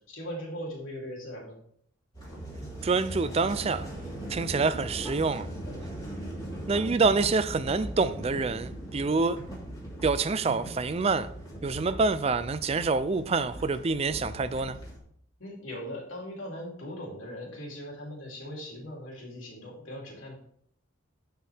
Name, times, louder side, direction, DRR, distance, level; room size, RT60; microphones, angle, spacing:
voice 1, 0.1-1.6 15.4-20.4, equal, 80° left, 3.0 m, -39 dB
sound 1, 2.1-15.0, right 1 dB, 20° left, 2.6 m, -39 dB
voice 2, 2.8-3.9 4.3-5.5 6.7-9.4 10.0-11.3 11.6-14.8, right 4 dB, 30° right, 0.4 m, -26 dB
11.5 x 4.7 x 3.4 m
head